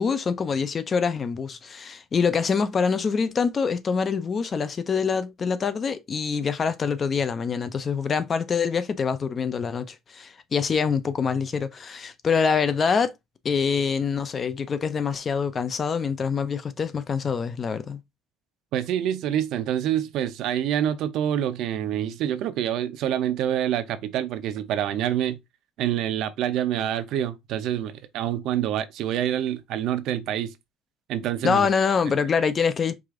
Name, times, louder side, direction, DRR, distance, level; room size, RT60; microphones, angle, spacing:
voice 1, 0.0-13.1 13.4-18.0 31.4-32.9, left 6 dB, 25° left, 0.4 m, -25 dB
voice 2, 18.7-25.4 25.8-30.5 31.1-31.7, right 10 dB, 60° right, 0.6 m, -26 dB
4.8 x 2.5 x 3.6 m
cardioid pair, 165°, 0 cm